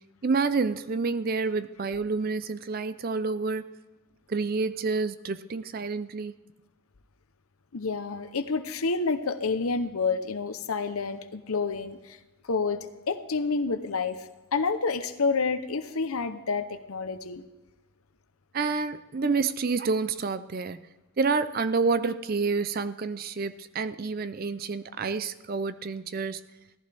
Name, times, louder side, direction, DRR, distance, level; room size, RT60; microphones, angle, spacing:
voice 1, 0.2-3.7 4.3-6.3 18.5-20.8 21.2-26.4, right 4 dB, 45° right, 14 dB, 0.5 m, -28 dB
voice 2, 7.7-12.2 12.5-12.8 13.1-17.4, left 4 dB, 85° left, 9 dB, 0.8 m, -29 dB
17.0 x 14.5 x 3.5 m, 1.1 s
head